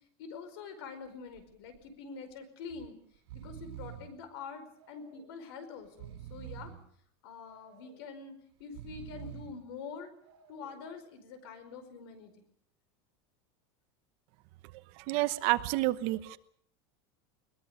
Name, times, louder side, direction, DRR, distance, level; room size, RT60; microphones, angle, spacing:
voice 1, 0.2-3.0 3.3-6.7 7.2-8.3 8.6-10.1 10.5-12.5, left 5 dB, 65° left, 10 dB, 5.0 m, -45 dB
Breathing, 1.1-1.4 1.7-1.8 2.7-2.9 3.1-4.2 4.7-5.4 5.8-6.9 7.4-8.1 8.6-9.6 10.2-10.8, right 11 dB, 75° right, 4.3 m, -48 dB
voice 2, 15.0-16.4, right 18 dB, 45° right, 13 dB, 1.0 m, -29 dB
22.0 x 20.5 x 6.7 m, 0.65 s
supercardioid pair, 175°, 14 cm